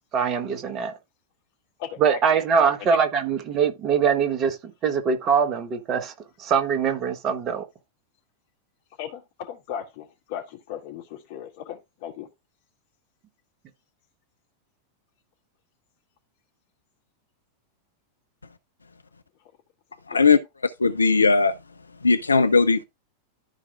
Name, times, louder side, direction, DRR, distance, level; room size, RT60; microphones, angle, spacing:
voice 1, 0.1-0.9 2.0-4.6 4.8-6.1 6.4-7.6, right 6 dB, 30° right, 1.2 m, -22 dB
voice 2, 1.8-2.2 2.5-2.7 9.0-12.3 20.1-20.2, left 9 dB, 50° left, 2.4 m, -36 dB
voice 3, 20.1-20.4 20.8-21.5 22.0-22.8, left 4 dB, 75° left, 0.5 m, -18 dB
14.0 x 4.7 x 2.4 m
figure-of-eight pair, 90°, 0 cm